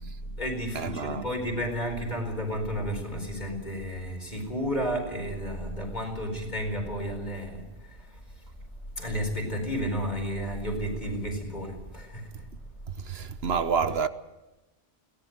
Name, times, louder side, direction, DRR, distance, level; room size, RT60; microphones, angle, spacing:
voice 1, 0.2-8.2 9.0-12.4, equal, 45° left, 4.7 m, -32 dB
voice 2, 0.7-1.2 13.0-14.1, right 6 dB, 70° right, 1.2 m, -28 dB
22.0 x 18.0 x 7.9 m
omnidirectional pair, 1.1 m